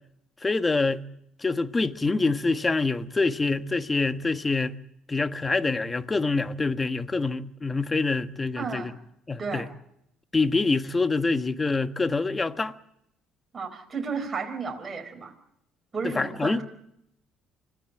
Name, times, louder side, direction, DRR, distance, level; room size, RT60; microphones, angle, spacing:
voice 1, 0.4-1.0 1.4-4.7 5.1-8.9 9.3-9.6 10.3-12.7 16.0-16.6, left 3 dB, 25° left, 1.4 m, -26 dB
voice 2, 8.6-8.9 9.4-9.7 13.5-15.3 15.9-16.6, right 5 dB, 30° right, 4.6 m, -33 dB
25.5 x 16.0 x 8.6 m
supercardioid pair, 75°, 0 cm